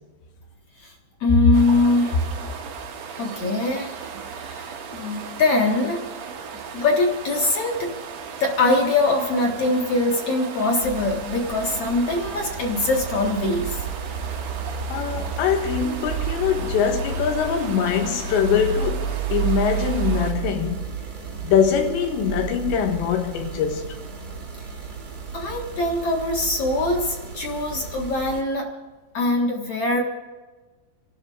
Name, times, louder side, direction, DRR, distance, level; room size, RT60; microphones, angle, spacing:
voice 1, 1.2-2.5 3.2-3.9 4.3-6.1 6.7-7.9 8.4-13.9 25.3-28.7 29.1-30.0, left 2 dB, 50° left, 1.9 m, -23 dB
sound 1, 1.5-20.3, right 6 dB, 85° right, 1.4 m, -37 dB
sound 2, 10.8-28.4, right 5 dB, 65° right, 0.9 m, -31 dB
voice 2, 14.9-20.9 21.4-23.9, left 7 dB, 85° left, 3.6 m, -23 dB
27.5 x 12.5 x 3.7 m
omnidirectional pair, 5.1 m